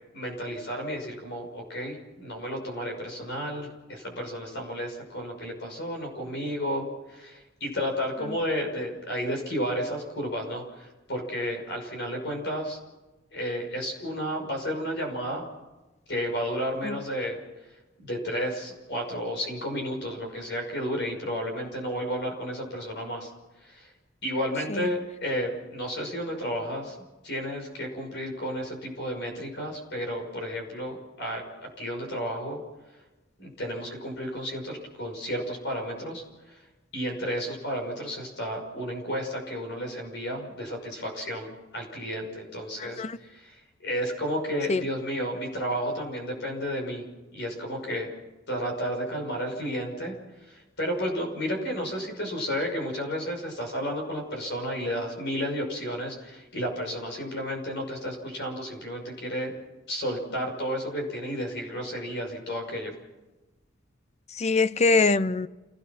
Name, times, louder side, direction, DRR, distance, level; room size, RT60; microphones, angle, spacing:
voice 1, 0.1-12.8 13.3-15.5 16.1-17.4 18.0-23.3 23.6-23.9 24.2-27.0 27.2-31.4 31.8-32.6 33.4-36.6 36.9-47.0 47.3-48.1 48.5-50.1 50.5-59.5 59.9-62.9, equal, 60° left, 6.0 m, -32 dB
voice 2, 42.8-43.2 44.7-44.8 64.3-65.5, left 3 dB, 35° left, 0.6 m, -24 dB
28.5 x 17.5 x 6.0 m
head